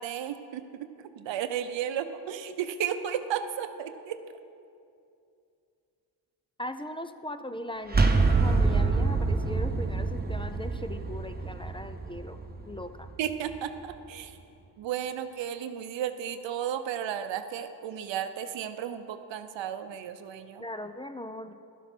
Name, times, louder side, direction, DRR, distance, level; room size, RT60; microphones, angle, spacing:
voice 1, 0.0-4.2 13.2-14.4 14.8-20.6, right 9 dB, 85° right, 10 dB, 0.8 m, -34 dB
voice 2, 6.6-8.1 8.4-13.1 20.6-21.5, left 1 dB, 10° left, 9 dB, 0.5 m, -39 dB
sound 1, 7.9-13.6, right 3 dB, 20° right, 1.1 m, -26 dB
12.0 x 8.1 x 6.0 m, 2.5 s
cardioid pair, 65°, 43 cm